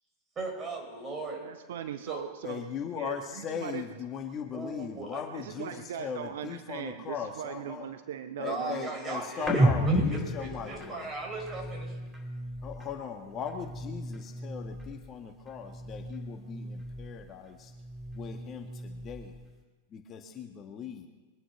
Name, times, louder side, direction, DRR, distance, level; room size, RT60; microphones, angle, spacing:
voice 1, 0.4-1.5 2.1-2.2 4.5-5.2 8.4-12.0, right 3 dB, 20° right, 2 dB, 5.5 m, -38 dB
voice 2, 1.4-2.6 2.9-3.8 5.3-9.6, right 9 dB, 60° right, 10 dB, 0.7 m, -40 dB
voice 3, 2.4-7.9 8.4-11.1 12.6-17.7 18.1-19.3 19.9-21.1, left 7 dB, 30° left, 4 dB, 1.6 m, -39 dB
sound 1, 9.4-13.0 13.3-15.1 15.4-17.3 17.6-19.5, right 1 dB, 5° right, 3.8 m, -33 dB
23.5 x 9.8 x 6.0 m, 1.2 s
figure-of-eight pair, 90°, 0 cm